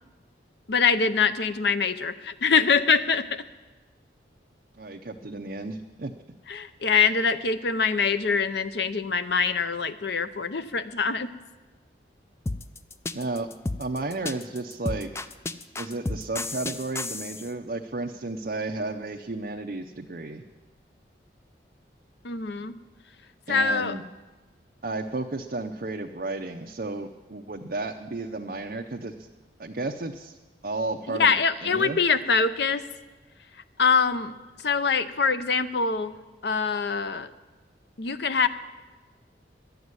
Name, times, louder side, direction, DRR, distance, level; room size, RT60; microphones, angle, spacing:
voice 1, 0.7-3.4 6.5-11.3 22.2-22.8 23.5-24.0 31.1-32.8 33.8-34.3 34.6-36.1 36.4-37.3 38.0-38.5, left 5 dB, 70° left, 12 dB, 0.6 m, -24 dB
voice 2, 4.7-6.1 13.1-13.5 13.8-15.1 15.8-20.4 23.5-24.0 24.8-29.3 29.6-30.4 30.6-32.0, right 2 dB, 50° right, 3 dB, 0.6 m, -33 dB
sound 1, 12.5-17.5, left 2 dB, 15° left, 0.3 m, -32 dB
12.0 x 7.9 x 9.6 m, 1.2 s
head